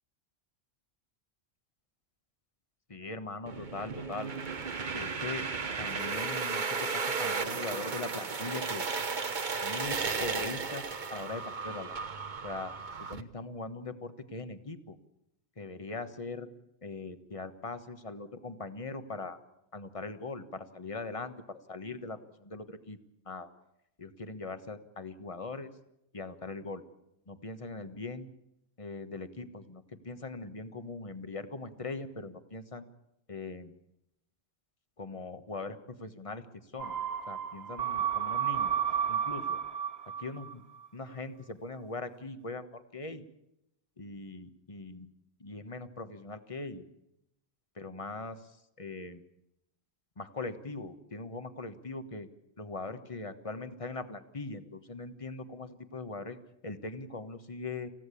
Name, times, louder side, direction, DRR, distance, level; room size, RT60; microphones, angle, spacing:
voice 1, 2.9-4.3 4.9-5.5 5.8-8.8 9.6-12.0 12.4-12.7 13.1-15.0 15.6-16.5 16.8-19.4 19.7-23.0 23.2-23.5 24.0-25.7 26.1-26.8 27.3-28.3 28.8-32.8 33.3-33.7 35.0-36.4 36.7-36.9 37.3-38.7 39.1-39.6 40.2-40.6 40.9-43.3 44.0-45.1 45.4-46.8 47.8-48.5 48.8-49.2 50.2-52.3 52.6-56.4 56.6-57.9, left 3 dB, 30° left, 10 dB, 1.4 m, -41 dB
sound 1, 3.5-13.2, right 5 dB, 45° right, 1.2 m, -34 dB
sound 2, 36.8-40.5 40.8-40.9, right 8 dB, 60° right, 2.2 m, -32 dB
27.0 x 16.0 x 8.5 m, 0.85 s
omnidirectional pair, 1.2 m